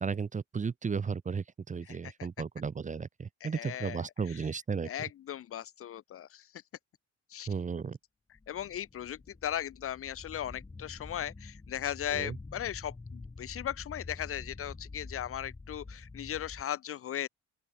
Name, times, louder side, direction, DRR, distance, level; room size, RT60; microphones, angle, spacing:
voice 1, 0.0-4.9 7.5-8.0 12.1-12.4, right 5 dB, 25° right, 0.7 m, -34 dB
voice 2, 3.4-4.0 4.3-4.4 4.8-6.5 7.3-7.5 8.5-17.3, left 10 dB, 50° left, 0.5 m, -37 dB
sound 1, 8.4-16.6, left 3 dB, 15° left, 1.3 m, -47 dB
open air
cardioid pair, 90°, 30 cm